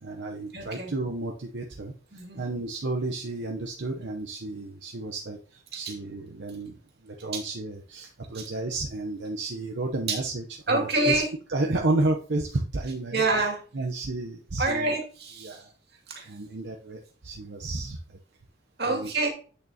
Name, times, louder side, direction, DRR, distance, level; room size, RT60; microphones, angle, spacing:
voice 1, 0.0-1.9 2.3-6.8 7.0-11.2 11.5-13.2 13.7-14.9 15.4-15.7 16.3-18.0 18.9-19.1, right 2 dB, 85° right, 1 dB, 0.8 m, -31 dB
voice 2, 0.5-0.9 2.1-2.4 5.7-5.9 7.3-7.4 8.3-8.5 10.1-10.2 10.7-11.3 13.1-13.6 14.6-15.6 16.1-16.3 18.8-19.3, right 2 dB, 65° right, 1 dB, 2.3 m, -27 dB
8.5 x 6.7 x 2.8 m, 0.40 s
head